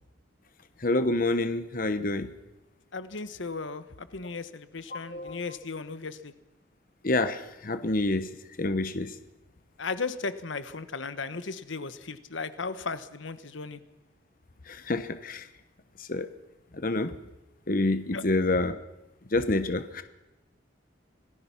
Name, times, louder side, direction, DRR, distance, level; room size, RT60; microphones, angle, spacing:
voice 1, 0.8-2.3 4.9-5.4 7.0-8.3 8.6-9.1 14.7-15.5 16.1-16.3 16.8-17.1 17.7-18.8 19.3-20.0, left 2 dB, 45° left, 11 dB, 1.0 m, -27 dB
voice 2, 2.9-6.3 9.8-13.8 18.1-18.2, left 4 dB, 75° left, 12 dB, 1.1 m, -36 dB
26.0 x 18.5 x 5.9 m, 0.98 s
head